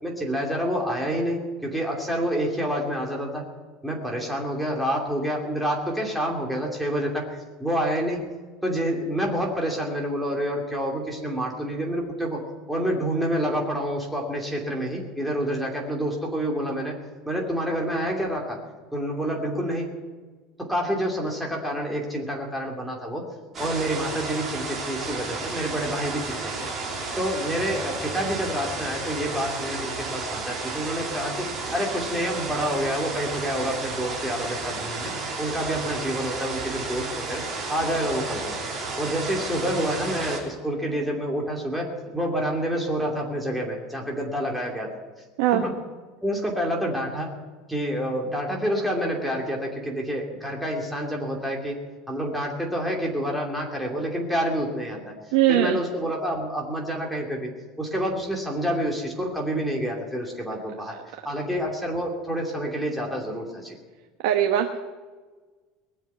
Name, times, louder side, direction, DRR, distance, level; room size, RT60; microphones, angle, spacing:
voice 1, 0.0-3.4 3.8-8.2 8.6-12.4 12.7-16.9 17.2-18.6 18.9-19.9 20.6-23.2 23.6-26.7 27.2-35.1 35.4-37.4 37.7-38.5 39.0-44.9 45.5-45.8 46.2-47.3 47.7-51.8 52.1-55.1 55.5-57.5 57.8-60.9 61.2-63.8, equal, ahead, -1 dB, 2.7 m, -28 dB
sound 1, 23.5-40.4, right 3 dB, 25° right, 3.4 m, -32 dB
voice 2, 55.3-55.8 60.9-61.0 64.2-64.8, right 12 dB, 80° right, 4 dB, 1.2 m, -21 dB
20.0 x 7.4 x 9.4 m, 1.4 s
cardioid pair, 160°, 0 cm